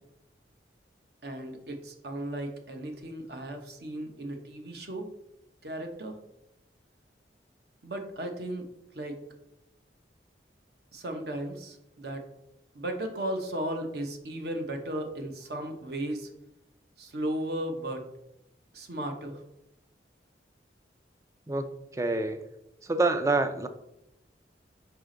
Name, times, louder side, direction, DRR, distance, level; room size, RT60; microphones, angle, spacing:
voice 1, 1.2-5.1 5.6-6.2 7.8-8.7 8.9-9.2 10.9-12.3 12.7-16.3 17.0-18.0 18.7-19.4, right 1 dB, 60° right, 4 dB, 0.9 m, -35 dB
voice 2, 21.5-22.4 22.8-23.7, right 2 dB, 15° right, 8 dB, 0.3 m, -27 dB
5.1 x 4.8 x 3.8 m, 0.85 s
head